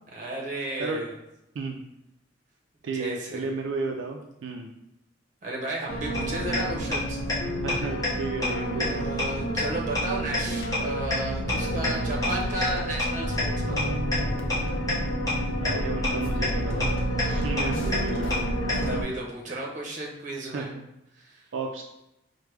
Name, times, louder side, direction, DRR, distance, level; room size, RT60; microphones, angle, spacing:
voice 1, 0.1-1.1 2.9-3.5 5.4-7.2 8.6-14.0 18.9-20.7 21.2-21.5, right 2 dB, 40° right, -2 dB, 0.8 m, -33 dB
voice 2, 2.8-4.7 7.6-9.0 15.6-16.9 17.3-18.5 18.7-18.9 19.5-19.6 20.5-20.8 21.5-21.8, right 3 dB, 80° right, 2 dB, 0.4 m, -33 dB
sound 1, 5.9-19.0, equal, 85° left, 0.6 m, -29 dB
sound 2, 6.1-6.2 6.5-6.6 6.9-7.0 7.3-7.4 7.7-7.8 8.0-8.1 8.4-8.5 8.8-8.9 9.2-9.3 9.6-9.7 10.0-10.1 10.3-10.4 10.7-10.8 11.1-11.2 11.5-11.6 11.8-11.9 12.2-12.3 12.6-12.7 13.0-13.1 13.4-13.5 13.8-13.9 14.1-14.2 14.5-14.6 14.9-15.0 15.3-15.4 15.7-15.8 16.0-16.1 16.4-16.5 16.8-16.9 17.2-17.3 17.6-17.7 17.9-18.0 18.3-18.4 18.7-18.8, left 2 dB, 20° left, 0.9 m, -26 dB
4.7 x 2.1 x 3.2 m, 0.87 s
head